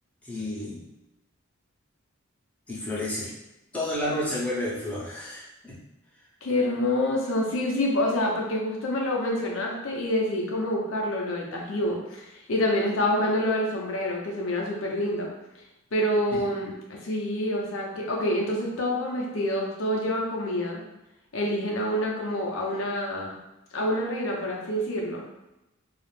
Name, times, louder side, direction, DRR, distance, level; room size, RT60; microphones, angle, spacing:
voice 1, 0.2-0.8 2.7-3.3 3.7-5.8 16.3-16.4, left 1 dB, 5° left, -8 dB, 0.7 m, -31 dB
voice 2, 6.4-15.3 15.9-20.8 21.3-23.4 23.7-25.3, left 1 dB, 70° left, -1 dB, 0.6 m, -27 dB
2.4 x 2.0 x 3.1 m, 0.94 s
head